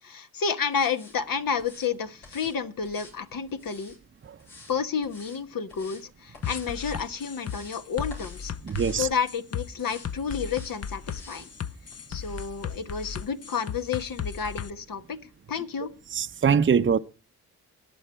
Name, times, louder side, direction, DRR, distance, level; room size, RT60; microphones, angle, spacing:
voice 1, 0.0-4.0 4.7-8.5 8.9-11.5 12.1-15.2 15.5-15.9, left 6 dB, 60° left, 1.3 m, -30 dB
sound 1, 0.7-1.2 1.6-1.9 2.2-2.6 2.8-4.0 4.4-4.7 5.0-5.4 5.7-6.0 6.3-6.7 7.1-7.8 8.1-8.4 8.7-9.1 9.8-10.1 10.4-10.7 11.1-11.5 11.9-12.0, left 3 dB, 90° left, 7.4 m, -49 dB
sound 2, 6.4-14.7, left 7 dB, 40° left, 0.7 m, -35 dB
voice 2, 8.6-9.1 16.1-17.0, right 7 dB, 30° right, 0.7 m, -22 dB
20.5 x 7.2 x 4.5 m
supercardioid pair, 50°, 37 cm